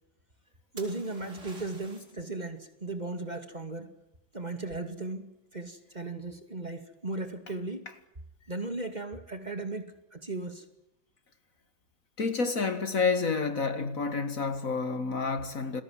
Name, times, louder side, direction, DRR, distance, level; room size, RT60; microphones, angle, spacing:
voice 1, 0.7-3.9 4.3-7.9 8.5-10.6, right 2 dB, 25° right, 2.4 m, -36 dB
sound 1, 0.8-2.2 5.9-6.3, right 2 dB, 45° right, 4.5 m, -50 dB
voice 2, 12.2-15.8, left 4 dB, 50° left, 2.1 m, -29 dB
28.5 x 20.5 x 7.6 m
omnidirectional pair, 1.9 m